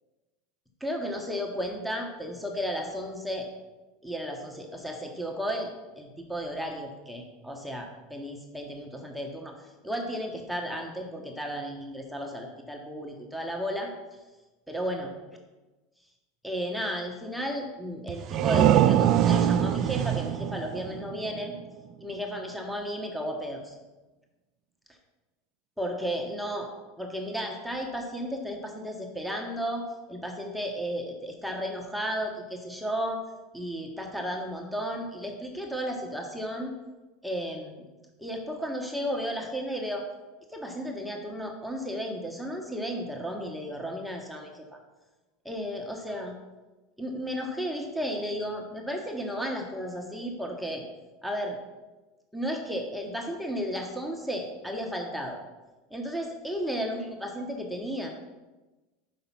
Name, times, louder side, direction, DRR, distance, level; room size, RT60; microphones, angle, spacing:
voice 1, 0.8-3.5 4.0-13.9 14.7-15.1 16.4-21.5 22.0-23.8 25.8-26.7 27.0-33.2 33.5-36.7 37.2-37.9 38.2-40.0 40.5-44.7 45.4-46.4 47.0-50.8 51.2-51.6 52.3-55.4 55.9-58.1, equal, ahead, 1 dB, 1.0 m, -34 dB
sound 1, 18.1-21.7, right 10 dB, 50° right, 0.3 m, -23 dB
5.5 x 5.0 x 5.6 m, 1.2 s
hypercardioid pair, 90°, 0 cm